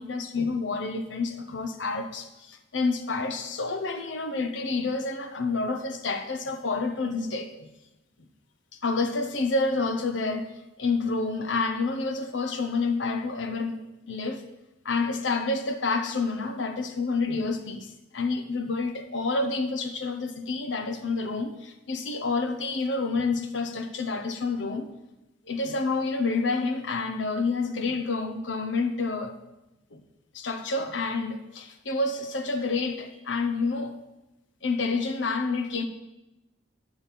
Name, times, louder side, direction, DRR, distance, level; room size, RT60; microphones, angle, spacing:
voice 1, 0.0-7.7 8.8-10.5 10.8-13.8 14.1-14.4 14.8-24.9 25.5-29.4 29.9-30.0 30.3-34.0 34.6-35.8, left 3 dB, 75° left, 0.8 m, -28 dB
9.0 x 6.3 x 5.2 m
head